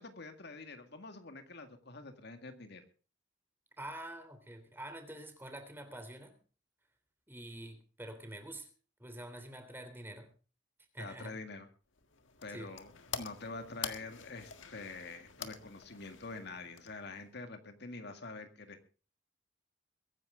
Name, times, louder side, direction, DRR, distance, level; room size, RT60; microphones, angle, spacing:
voice 1, 0.0-2.8 11.0-11.7 12.4-12.9 13.2-18.9, left 3 dB, 60° left, 7 dB, 1.9 m, -46 dB
voice 2, 3.8-6.3 7.3-8.7 9.0-10.3 10.9-11.4 12.5-12.7, right 1 dB, 10° right, 7 dB, 3.2 m, -46 dB
sound 1, 11.9-17.3, left 7 dB, 85° left, 1.7 m, -46 dB
23.0 x 10.5 x 3.7 m, 0.37 s
head